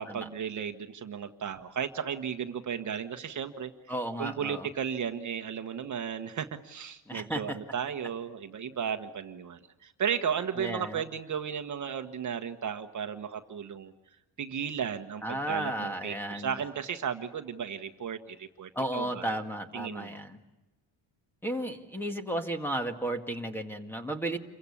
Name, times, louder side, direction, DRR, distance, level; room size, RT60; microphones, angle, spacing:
voice 1, 0.0-3.7 4.2-13.9 14.4-19.4 19.7-20.2, right 7 dB, 40° right, 7 dB, 1.3 m, -35 dB
voice 2, 3.9-4.7 7.1-7.6 10.6-11.0 15.2-16.5 18.8-20.4 21.4-24.4, right 1 dB, 5° left, 6 dB, 1.8 m, -34 dB
29.0 x 23.5 x 8.5 m, 1.0 s
cardioid pair, 175°, 44 cm